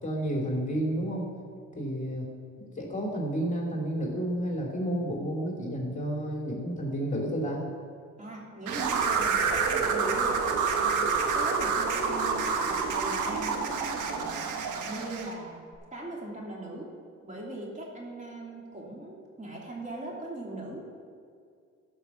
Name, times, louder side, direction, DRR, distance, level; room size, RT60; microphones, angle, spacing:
voice 1, 0.0-1.2 1.7-2.3 2.6-7.6, right 1 dB, 25° left, -1 dB, 2.8 m, -31 dB
voice 2, 8.2-10.4 10.8-13.5 14.0-14.4 14.7-15.6 15.9-16.9 17.2-20.8, right 1 dB, 25° right, -3 dB, 2.9 m, -40 dB
sound 1, 8.7-15.3, right 5 dB, 85° right, 1.2 m, -28 dB
14.0 x 5.6 x 7.1 m, 2.3 s
cardioid pair, 90°, 30 cm